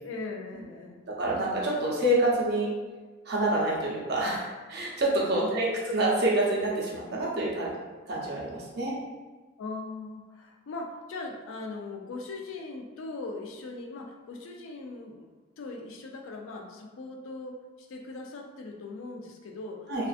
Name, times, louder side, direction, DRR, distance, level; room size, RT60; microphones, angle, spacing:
voice 1, 0.0-1.0 5.4-5.9 9.6-15.3 15.6-20.1, left 3 dB, 70° left, 1 dB, 0.4 m, -40 dB
voice 2, 1.1-2.7 3.3-7.7 8.1-8.9 19.9-20.1, right 1 dB, 50° right, -4 dB, 0.6 m, -27 dB
2.4 x 2.4 x 2.4 m, 1.3 s
head